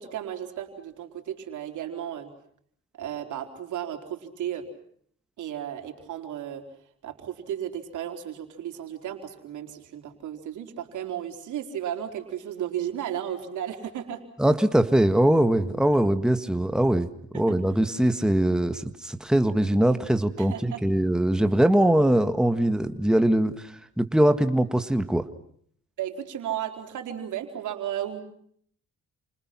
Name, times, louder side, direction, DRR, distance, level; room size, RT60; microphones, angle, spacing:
voice 1, 0.0-2.3 2.9-4.7 5.4-6.6 7.0-14.2 17.3-17.6 20.4-20.8 26.0-28.2, right 10 dB, 75° right, 5 dB, 4.3 m, -34 dB
voice 2, 14.4-17.1 17.3-25.3, right 1 dB, ahead, 9 dB, 1.6 m, -22 dB
29.5 x 27.5 x 6.0 m, 0.64 s
cardioid pair, 90°, 30 cm